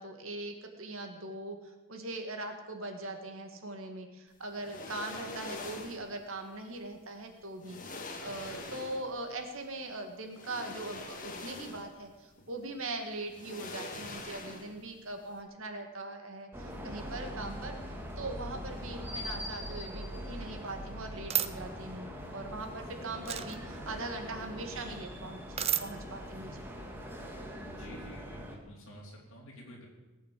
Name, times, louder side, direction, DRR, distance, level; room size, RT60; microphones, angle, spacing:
voice 1, 0.0-26.7, right 2 dB, 65° right, 5 dB, 2.1 m, -41 dB
sound 1, 4.6-6.1 7.2-7.3 7.6-9.2 10.3-12.0 12.4-12.5 13.3-14.9 15.2-15.3, left 2 dB, 35° left, 1.8 m, -44 dB
sound 2, 16.5-28.6, equal, 10° right, 1.9 m, -42 dB
sound 3, 21.3-21.5 23.2-23.6 25.6-25.8, right 10 dB, 25° right, 0.6 m, -30 dB
voice 2, 27.6-29.9, equal, 60° left, -2 dB, 4.0 m, -50 dB
18.5 x 8.5 x 7.6 m, 1.1 s
head